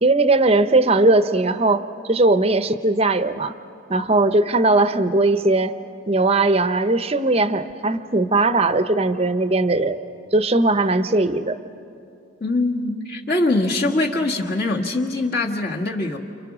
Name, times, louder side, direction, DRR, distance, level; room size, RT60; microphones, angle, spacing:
voice 1, 0.0-3.5 3.9-5.7 6.1-10.0 10.3-11.6, right 2 dB, 30° right, 11 dB, 0.7 m, -19 dB
voice 2, 12.4-16.2, left 2 dB, 50° left, 0 dB, 1.8 m, -22 dB
29.5 x 28.5 x 6.2 m, 2.6 s
head